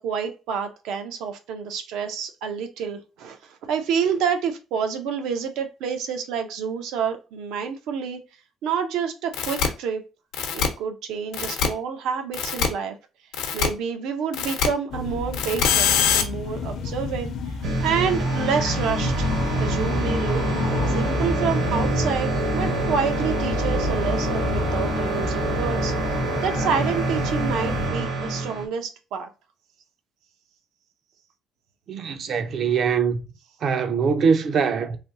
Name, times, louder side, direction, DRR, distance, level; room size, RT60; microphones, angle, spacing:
voice 1, 0.0-8.2 8.6-10.0 10.5-13.0 13.5-20.4 20.9-25.9 26.4-29.3, right 7 dB, 80° right, 0.7 m, -28 dB
sound 1, 9.3-9.7 10.3-10.7 11.3-11.7 12.3-12.7 13.3-13.7 14.3-14.7 15.3-16.2, left 7 dB, 85° left, 0.7 m, -22 dB
sound 2, 14.9-27.9, left 3 dB, 50° left, 0.5 m, -30 dB
sound 3, 17.6-28.7, right 2 dB, 65° right, 1.0 m, -26 dB
voice 2, 31.9-33.3 33.6-35.0, right 6 dB, 45° right, 0.4 m, -22 dB
3.3 x 2.6 x 2.7 m
cardioid pair, 160°, 0 cm